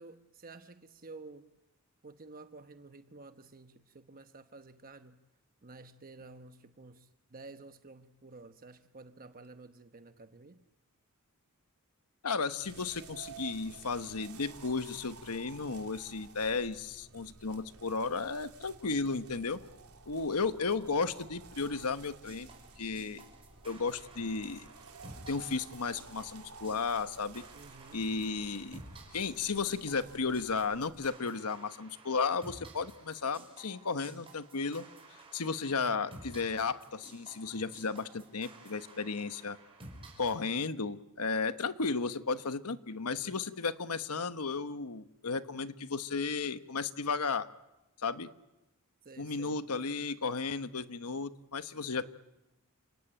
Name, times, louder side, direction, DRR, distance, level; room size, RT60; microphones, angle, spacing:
voice 1, 0.0-1.5 2.0-5.2 5.6-10.6 27.5-28.0 49.0-49.6, right 3 dB, 40° right, 9 dB, 1.0 m, -51 dB
voice 2, 12.2-19.6 20.1-22.5 22.8-23.2 23.6-24.7 25.3-27.4 27.9-28.8 29.1-34.8 35.3-39.6 40.2-47.5 48.0-48.3 49.2-52.0, left 4 dB, 85° left, 11 dB, 1.1 m, -34 dB
sound 1, 12.6-31.1, right 4 dB, 80° right, 2.9 m, -53 dB
sound 2, 21.7-40.4, right 2 dB, 25° right, 5.6 m, -54 dB
29.5 x 17.5 x 9.1 m, 0.97 s
head